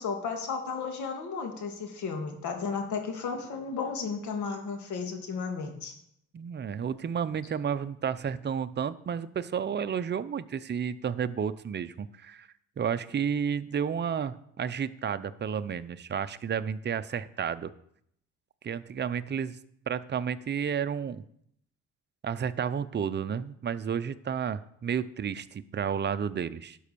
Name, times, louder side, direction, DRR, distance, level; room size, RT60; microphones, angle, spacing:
voice 1, 0.0-5.9, left 5 dB, 75° left, 4 dB, 2.3 m, -34 dB
voice 2, 6.3-12.5 12.8-17.7 18.6-19.6 19.9-21.2 22.2-26.8, right 7 dB, 35° right, 12 dB, 0.6 m, -31 dB
11.0 x 5.5 x 6.9 m, 0.72 s
cardioid pair, 90°, 30 cm